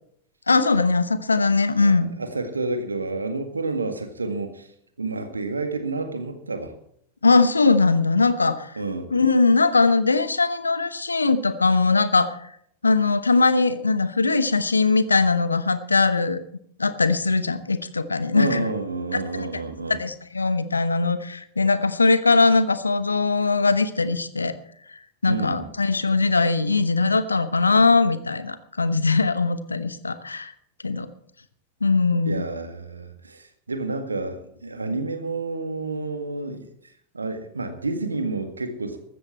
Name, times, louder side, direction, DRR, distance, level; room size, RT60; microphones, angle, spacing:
voice 1, 0.5-2.1 7.2-8.7 9.1-12.3 12.8-16.4 16.8-18.6 19.5-19.6 19.9-24.5 25.2-30.5 30.8-31.1 31.8-32.4, left 3 dB, 80° left, 13 dB, 1.0 m, -20 dB
voice 2, 1.8-4.7 5.0-6.7 8.8-9.1 18.3-20.0 25.3-25.7 32.2-36.6 37.1-39.0, right 3 dB, 80° right, 8 dB, 1.8 m, -29 dB
14.5 x 13.5 x 4.5 m, 0.70 s
figure-of-eight pair, 90°, 0 cm